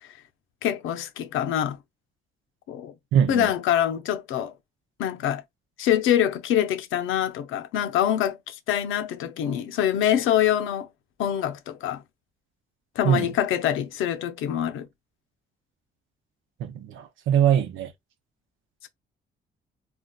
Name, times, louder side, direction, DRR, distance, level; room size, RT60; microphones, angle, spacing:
voice 1, 0.6-1.8 2.7-2.9 3.3-4.5 5.0-5.4 5.8-10.9 11.2-12.0 13.0-14.9, left 10 dB, 90° left, 0.6 m, -25 dB
voice 2, 3.1-3.5 13.0-13.3 16.6-17.9, right 9 dB, 85° right, 0.7 m, -22 dB
3.8 x 2.3 x 2.3 m
cardioid pair, 90°, 20 cm